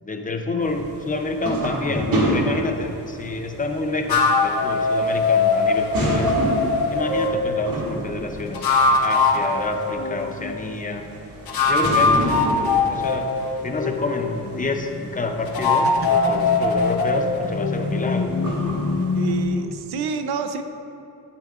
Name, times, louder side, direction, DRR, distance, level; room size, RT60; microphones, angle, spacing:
voice 1, 0.0-6.4 6.9-11.1 11.7-13.3 13.6-20.0, left 3 dB, 20° left, 4 dB, 0.6 m, -27 dB
sound 1, 0.6-19.5, right 1 dB, 55° right, 2.0 m, -31 dB
sound 2, 4.1-7.4 8.4-10.5 11.5-14.7 15.5-19.1, left 4 dB, 65° left, 1.2 m, -21 dB
voice 2, 19.2-20.6, right 5 dB, 70° right, 8 dB, 0.7 m, -28 dB
11.5 x 10.0 x 2.5 m, 2.8 s
wide cardioid pair, 145°, 41 cm